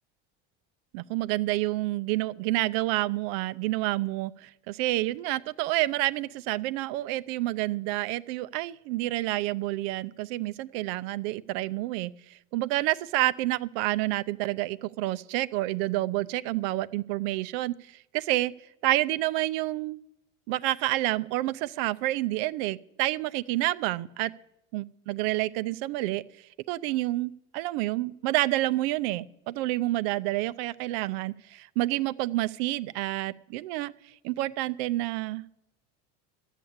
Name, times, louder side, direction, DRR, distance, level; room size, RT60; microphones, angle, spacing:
voice 1, 0.9-12.1 12.5-17.7 18.1-18.5 18.8-20.0 20.5-24.3 24.7-26.2 26.7-33.9 34.2-35.4, right 17 dB, 70° right, 15 dB, 0.5 m, -29 dB
13.0 x 6.6 x 8.5 m, 0.87 s
supercardioid pair, 115°, 32 cm